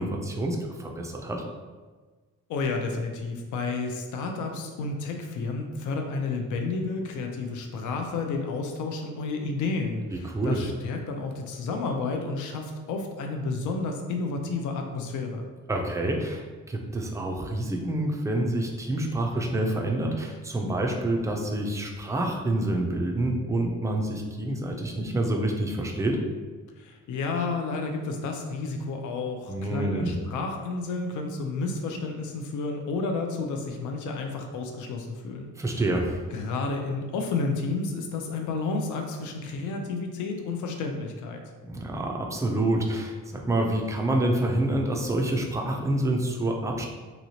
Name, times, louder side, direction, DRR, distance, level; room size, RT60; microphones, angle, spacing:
voice 1, 0.0-1.5 10.2-10.6 15.7-26.2 29.5-30.1 35.6-36.3 41.7-46.9, right 1 dB, 10° right, 1 dB, 0.3 m, -27 dB
voice 2, 2.5-15.5 26.8-35.8 36.3-41.4, left 3 dB, 75° left, 3 dB, 0.5 m, -31 dB
3.0 x 2.8 x 2.7 m, 1.4 s
cardioid pair, 130°, 31 cm